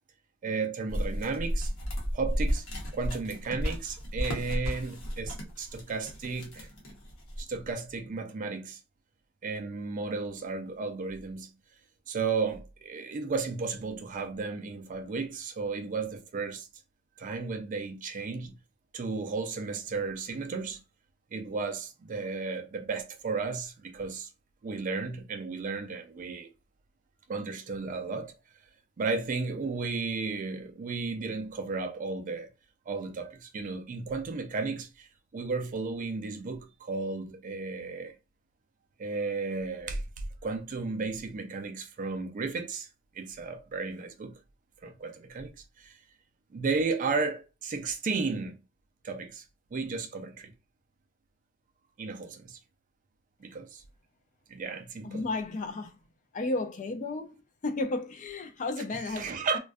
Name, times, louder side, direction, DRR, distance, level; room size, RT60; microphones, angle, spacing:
voice 1, 0.4-1.7 2.1-2.7 2.9-6.7 7.4-8.8 9.4-11.5 12.1-16.7 17.2-18.6 18.9-20.8 21.3-24.3 24.6-26.5 27.3-28.3 29.0-32.5 32.9-35.1 35.3-38.1 39.0-40.0 40.4-42.9 43.2-44.3 44.8-45.5 45.8-46.0 46.5-48.6 49.0-49.4 49.7-50.5 52.0-52.6 53.4-53.8 54.5-55.3 59.1-59.6, right 4 dB, 40° right, 0.3 m, -34 dB
sound 1, 0.9-7.6, equal, 70° left, 0.8 m, -33 dB
voice 2, 55.0-55.9 56.3-57.4 57.6-59.6, left 2 dB, 35° left, 0.4 m, -33 dB
2.5 x 2.2 x 2.2 m
head